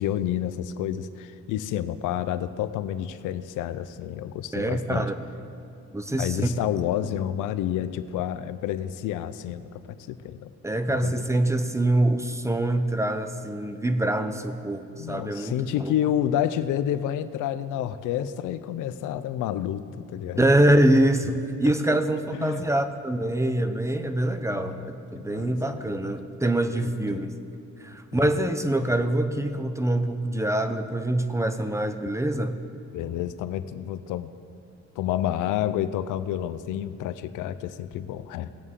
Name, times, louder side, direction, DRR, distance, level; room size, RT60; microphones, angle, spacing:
voice 1, 0.0-5.1 6.1-9.8 10.1-10.5 10.9-11.3 15.0-20.4 21.6-22.0 22.3-22.6 24.5-24.9 25.2-26.1 26.8-27.3 28.1-28.3 32.9-34.3 35.0-38.5, left 11 dB, 90° left, 13 dB, 0.6 m, -29 dB
voice 2, 4.5-5.1 5.9-6.4 7.0-7.2 10.6-15.9 20.4-24.8 25.1-27.3 27.8-32.6, right 1 dB, 10° right, 9 dB, 0.8 m, -24 dB
19.5 x 8.0 x 3.7 m, 2.6 s
cardioid pair, 90°, 30 cm